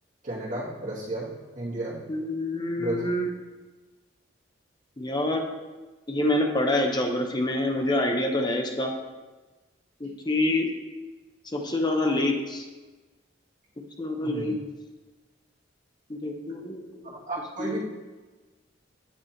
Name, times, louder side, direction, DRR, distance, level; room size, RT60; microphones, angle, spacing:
voice 1, 0.2-2.0 2.8-3.1 10.0-10.1 14.2-14.6 17.1-17.8, right 2 dB, 45° right, -8 dB, 1.9 m, -33 dB
voice 2, 2.1-3.3 5.0-5.4 6.1-8.9 10.0-10.7 11.5-12.6 14.0-14.5 16.1-17.0 17.6-17.8, left 1 dB, 25° left, 3 dB, 0.7 m, -26 dB
8.7 x 3.4 x 4.4 m, 1.2 s
head